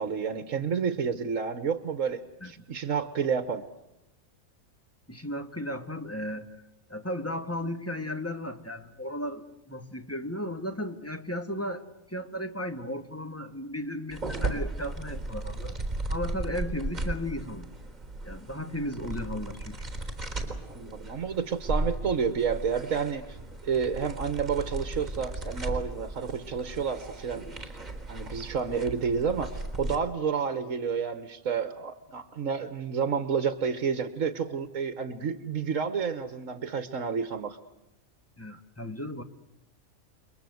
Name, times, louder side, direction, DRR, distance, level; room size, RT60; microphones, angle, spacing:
voice 1, 0.0-3.6 20.7-23.4 23.6-27.7 28.1-37.6, right 6 dB, 65° right, 11 dB, 1.7 m, -30 dB
voice 2, 5.1-6.5 6.9-15.8 16.1-17.7 18.2-19.9 38.4-39.2, left 1 dB, 10° left, 7 dB, 1.7 m, -35 dB
sound 1, 14.1-30.0, right 2 dB, 30° right, 4.1 m, -36 dB
30.0 x 23.0 x 7.9 m, 0.88 s
omnidirectional pair, 1.5 m